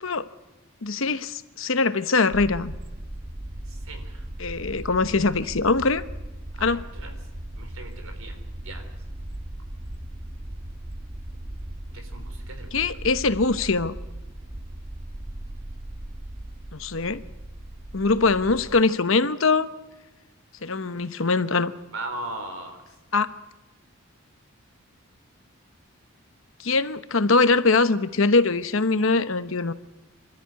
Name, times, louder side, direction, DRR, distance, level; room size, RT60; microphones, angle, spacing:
voice 1, 0.8-2.7 4.4-6.0 6.6-6.8 12.7-13.9 16.7-17.2 17.9-19.7 20.6-21.7 23.1-23.3 26.6-29.7, left 3 dB, 70° left, 12 dB, 1.0 m, -22 dB
sound 1, 2.3-18.8, right 1 dB, 25° right, 1.1 m, -38 dB
voice 2, 3.7-4.3 6.6-7.1 7.6-8.4 8.6-8.9 11.9-13.0 21.9-22.8, right 2 dB, 75° right, 6 dB, 4.2 m, -38 dB
26.0 x 13.0 x 9.6 m, 1.1 s
head